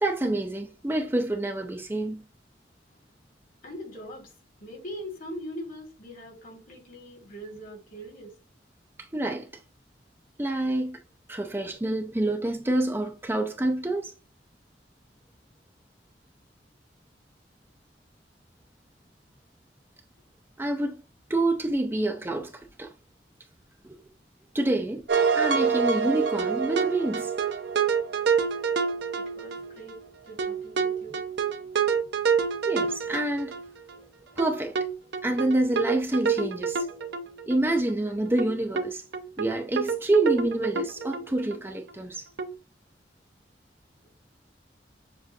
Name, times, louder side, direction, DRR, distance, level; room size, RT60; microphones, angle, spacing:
voice 1, 0.0-2.2 9.0-9.5 10.4-11.0 11.3-14.1 20.6-21.0 21.3-22.5 22.8-22.9 23.8-24.0 24.5-25.0 25.3-27.3 32.6-33.6 34.4-34.8 35.2-37.0 37.5-39.0 39.4-42.3, right 2 dB, 15° right, 0.5 m, -27 dB
voice 2, 3.6-4.3 4.6-8.3 29.1-31.2, equal, 50° left, 1.9 m, -41 dB
sound 1, 25.1-30.0 30.4-33.9 34.4-37.6 37.9-38.0 38.4-38.5 38.8-38.9 39.1-41.6 41.9-42.0 42.4-42.5, right 6 dB, 65° right, 0.7 m, -27 dB
7.3 x 2.5 x 2.7 m
head